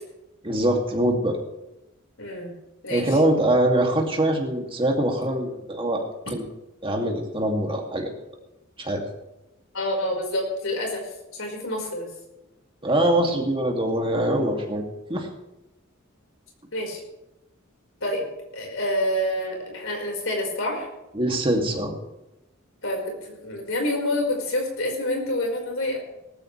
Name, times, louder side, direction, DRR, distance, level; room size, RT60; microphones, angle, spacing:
voice 1, 0.4-1.4 2.9-6.4 6.8-8.1 8.8-9.0 12.8-14.8 15.1-15.3 21.1-21.9, right 1 dB, 25° right, 1 dB, 2.6 m, -23 dB
voice 2, 2.2-2.5 2.8-3.2 9.7-11.0 11.3-12.1 16.7-17.0 18.0-18.2 18.5-20.9 22.8-26.0, left 1 dB, 75° left, 0 dB, 5.1 m, -27 dB
18.5 x 15.0 x 3.4 m, 0.95 s
head